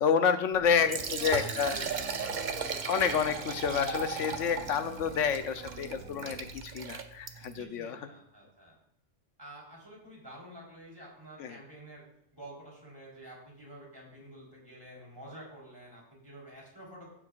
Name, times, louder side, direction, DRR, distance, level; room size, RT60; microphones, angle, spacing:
voice 1, 0.0-1.7 2.9-8.1 11.4-11.6, left 7 dB, 80° left, 9 dB, 1.1 m, -29 dB
sound 1, 0.5-6.6, right 2 dB, 75° right, 1.5 m, -47 dB
Liquid, 0.7-7.6, right 5 dB, 45° right, 0.8 m, -37 dB
voice 2, 0.8-2.5 7.6-8.8 9.4-12.0 12.3-17.1, right 1 dB, 20° right, -4 dB, 3.8 m, -49 dB
15.0 x 7.4 x 2.4 m, 0.73 s
omnidirectional pair, 1.3 m